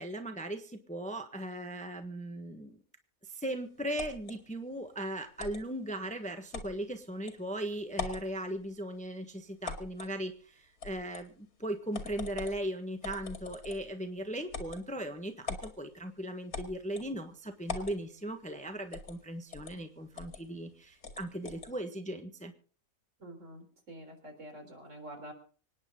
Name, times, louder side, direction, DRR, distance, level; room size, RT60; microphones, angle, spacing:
voice 1, 0.0-2.8 3.3-22.5, right 1 dB, 5° left, 6 dB, 1.3 m, -38 dB
sound 1, 4.0-4.4 5.4-5.6 6.5-6.7 7.3-7.4 7.9-8.3 9.6-10.1 10.8-11.3 11.9-12.6 13.0-13.9 14.5-14.8 15.5-15.7 16.5-17.1 17.7-18.0 18.9-19.2 19.5-19.7 20.2-20.4 21.0-21.7, left 5 dB, 85° left, 2.5 m, -41 dB
voice 2, 23.2-25.3, right 1 dB, 60° right, 4 dB, 4.1 m, -47 dB
26.0 x 9.8 x 3.8 m, 0.42 s
omnidirectional pair, 1.5 m